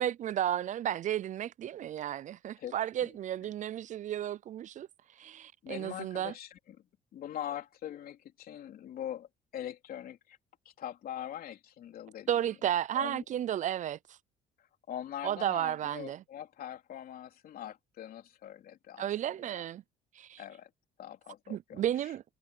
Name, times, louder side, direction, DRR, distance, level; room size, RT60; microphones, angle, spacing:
voice 1, 0.0-4.9 5.2-6.3 12.3-14.0 15.2-16.2 19.0-19.8 20.2-20.4 21.5-22.2, right 11 dB, 45° right, 0.4 m, -33 dB
voice 2, 5.6-6.8 7.1-9.3 9.5-10.4 10.7-12.3 12.9-13.2 14.9-19.1 19.5-19.6 20.4-20.7 21.0-21.8, left 11 dB, 60° left, 3.5 m, -42 dB
cardioid pair, 110°, 17 cm